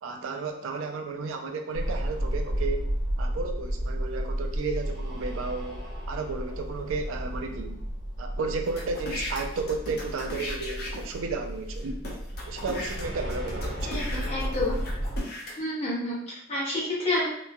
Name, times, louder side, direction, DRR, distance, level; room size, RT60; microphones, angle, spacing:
voice 1, 0.0-2.9 3.2-5.8 6.1-7.8 8.2-12.0 12.5-13.9, right 4 dB, 90° right, 5 dB, 0.4 m, -33 dB
sound 1, 1.7-15.2, equal, 65° right, 1.2 m, -33 dB
sound 2, 8.6-11.2 11.8-11.9 12.0-15.5, left 1 dB, 50° left, 0.6 m, -38 dB
voice 2, 13.9-14.8 15.6-17.3, left 1 dB, 30° left, -8 dB, 1.1 m, -29 dB
3.0 x 2.1 x 2.3 m, 0.73 s
head